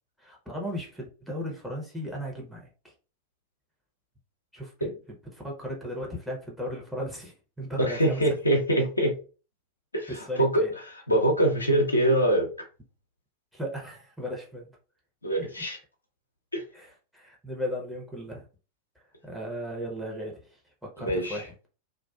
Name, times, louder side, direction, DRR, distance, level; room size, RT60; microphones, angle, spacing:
voice 1, 0.2-2.7 4.5-4.9 5.3-8.4 10.1-10.7 13.5-14.7 15.4-15.5 16.7-18.5 19.2-21.7, equal, 5° right, -2 dB, 0.9 m, -36 dB
voice 2, 7.8-9.1 9.9-10.1 10.4-10.6 11.1-12.7 15.2-15.8 16.5-16.6 21.0-21.4, right 1 dB, 80° left, 2 dB, 0.6 m, -24 dB
2.4 x 2.3 x 2.3 m, 0.34 s
figure-of-eight pair, 90°, 0 cm